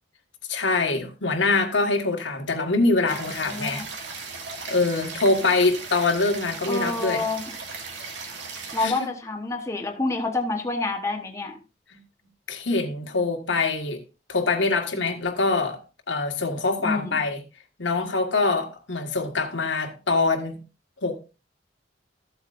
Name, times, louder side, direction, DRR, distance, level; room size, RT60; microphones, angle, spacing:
voice 1, 0.5-3.8 4.7-7.3 8.8-9.1 11.9-12.0 12.5-14.0 14.3-15.8 16.1-17.4 17.8-20.6 21.0-21.2, left 3 dB, 80° left, 1.7 m, -24 dB
voice 2, 3.1-3.9 6.7-7.4 8.7-11.6 16.8-17.2, left 2 dB, 15° left, 1.1 m, -28 dB
sound 1, 3.1-8.9, right 4 dB, 75° right, 2.1 m, -37 dB
14.0 x 8.0 x 2.6 m
head